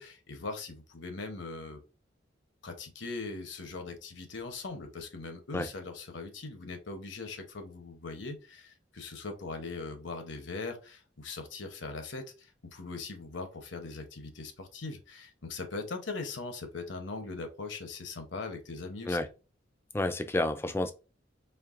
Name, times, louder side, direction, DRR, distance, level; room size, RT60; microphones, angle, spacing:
voice 1, 0.0-1.8 2.6-19.2, left 3 dB, 75° left, 0.9 m, -40 dB
voice 2, 19.9-20.9, left 2 dB, 10° left, 0.3 m, -30 dB
4.5 x 3.2 x 2.5 m
head